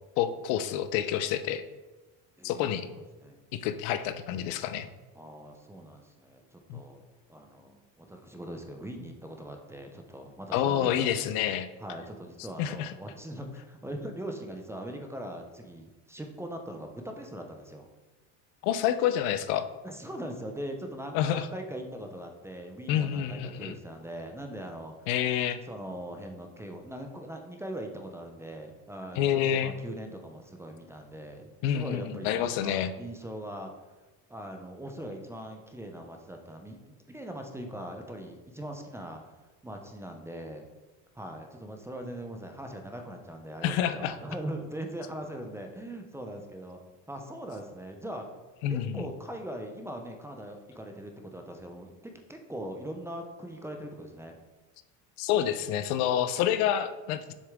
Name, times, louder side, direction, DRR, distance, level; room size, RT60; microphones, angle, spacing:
voice 1, 0.2-1.6 2.4-2.9 3.5-4.9 6.7-6.8 10.5-11.7 12.6-12.9 18.6-19.6 21.1-21.5 22.9-23.7 25.1-25.6 29.2-29.7 31.6-32.9 43.6-44.2 48.6-49.0 55.2-57.3, left 10 dB, 80° left, 11 dB, 0.7 m, -28 dB
voice 2, 2.4-3.4 5.2-7.0 7.3-11.1 11.8-17.9 19.8-25.1 25.7-33.7 34.3-39.2 39.6-40.7 41.1-46.8 47.1-48.3 48.7-54.4, right 1 dB, 5° right, 4 dB, 0.5 m, -41 dB
7.0 x 6.5 x 3.6 m, 1.2 s
cardioid pair, 140°, 40 cm